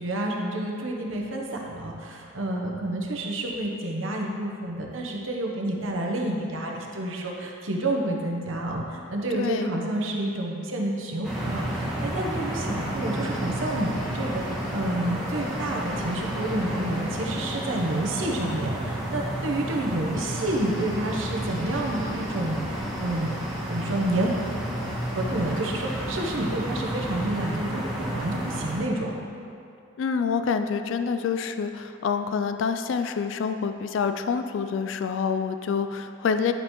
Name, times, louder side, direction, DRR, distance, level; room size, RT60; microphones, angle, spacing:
voice 1, 0.0-23.4 23.7-24.3 25.1-29.1, right 1 dB, 75° right, 0 dB, 1.0 m, -29 dB
voice 2, 9.3-9.7 30.0-36.5, left 6 dB, 70° left, 8 dB, 0.3 m, -27 dB
sound 1, 11.2-28.8, right 1 dB, 5° right, 1.4 m, -31 dB
10.5 x 5.4 x 3.1 m, 2.6 s
head